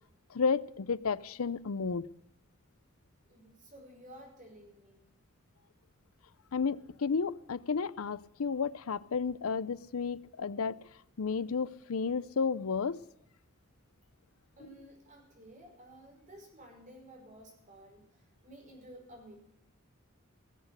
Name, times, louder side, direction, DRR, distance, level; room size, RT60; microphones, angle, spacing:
voice 1, 0.3-2.1 6.5-10.8 11.2-13.0, left 5 dB, 85° left, 0.6 m, -32 dB
voice 2, 3.3-5.0 14.6-19.4, right 1 dB, 35° right, 5.5 m, -53 dB
17.5 x 8.1 x 8.0 m
head